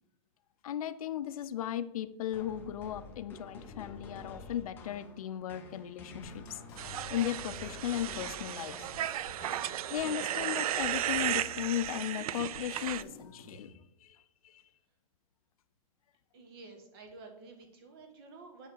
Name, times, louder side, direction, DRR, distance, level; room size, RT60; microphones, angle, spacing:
voice 1, 0.6-6.6 7.1-8.9 9.9-13.7 14.0-14.2 14.4-14.6, left 11 dB, 75° left, 13 dB, 0.6 m, -36 dB
sound 1, 2.3-10.1, left 3 dB, 10° left, 0.8 m, -49 dB
sound 2, 6.2-13.7, left 3 dB, 30° left, 2.3 m, -55 dB
sound 3, 6.8-13.0, right 11 dB, 80° right, 0.4 m, -35 dB
voice 2, 16.3-18.7, right 3 dB, 40° right, 5 dB, 1.5 m, -51 dB
8.1 x 3.9 x 6.3 m, 0.82 s
supercardioid pair, 175°, 19 cm